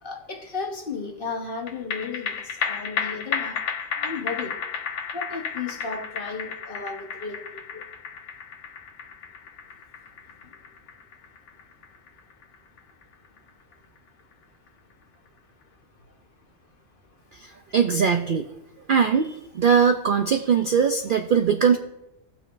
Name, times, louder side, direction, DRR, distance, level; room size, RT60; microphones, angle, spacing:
voice 1, 0.0-3.6 4.0-4.6 5.1-7.8, left 4 dB, 45° left, 1.2 m, -34 dB
sound 1, 1.7-14.3 14.7-14.8, left 6 dB, 65° left, 1.1 m, -33 dB
voice 2, 17.7-18.5 18.9-21.8, right 6 dB, 60° right, 0.5 m, -20 dB
17.5 x 6.0 x 2.5 m
omnidirectional pair, 1.3 m